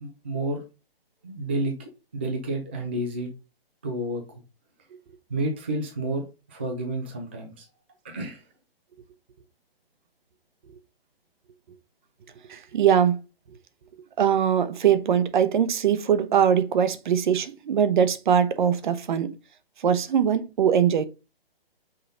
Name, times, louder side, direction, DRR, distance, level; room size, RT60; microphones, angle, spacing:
voice 1, 0.0-0.6 1.2-3.3 3.8-4.4 5.3-7.7 8.0-8.5, right 1 dB, 10° right, 0.3 m, -30 dB
voice 2, 12.5-13.2 14.2-19.3 19.8-21.1, right 8 dB, 50° right, 0.9 m, -21 dB
5.6 x 3.9 x 5.0 m
hypercardioid pair, 150°, 30 cm